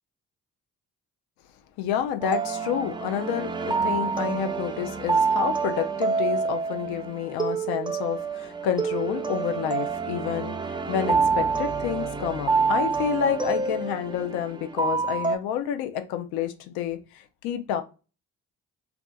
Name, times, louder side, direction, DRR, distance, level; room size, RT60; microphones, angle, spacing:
voice 1, 1.8-17.8, left 9 dB, 75° left, 0.5 m, -29 dB
sound 1, 2.2-15.4, right 5 dB, 15° right, 0.4 m, -27 dB
2.6 x 2.4 x 2.2 m
hypercardioid pair, 45°, 38 cm